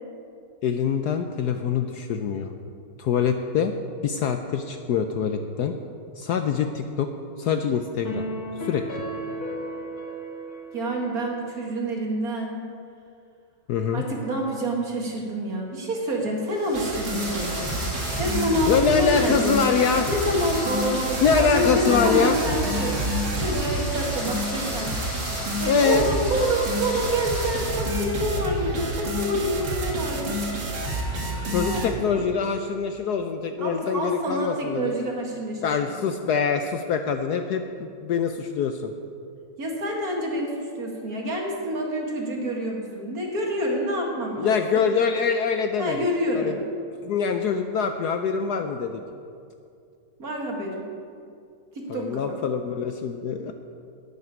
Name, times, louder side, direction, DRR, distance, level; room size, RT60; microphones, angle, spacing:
voice 1, 0.6-2.5 3.0-3.7 4.0-5.7 6.2-7.1 7.4-8.2 8.6-9.0 13.7-14.0 18.7-20.1 21.2-22.4 25.6-26.1 31.5-34.9 35.6-38.9 44.4-46.0 46.3-46.5 47.0-49.0 51.9-53.5, left 6 dB, 70° left, 6 dB, 1.0 m, -24 dB
sound 1, 8.0-11.5, right 1 dB, 90° left, 2.4 m, -34 dB
voice 2, 10.7-12.7 13.9-17.8 18.2-19.6 20.0-23.0 23.3-25.0 25.6-30.5 31.6-32.2 33.6-36.0 39.6-44.8 45.8-46.7 50.2-50.9 51.7-52.3, equal, 45° right, 0 dB, 2.2 m, -27 dB
sound 2, 16.5-28.2, left 1 dB, 25° left, 3.6 m, -36 dB
sound 3, 16.7-31.9, right 1 dB, 65° right, 2.4 m, -29 dB
12.0 x 6.7 x 9.4 m, 2.4 s
omnidirectional pair, 2.2 m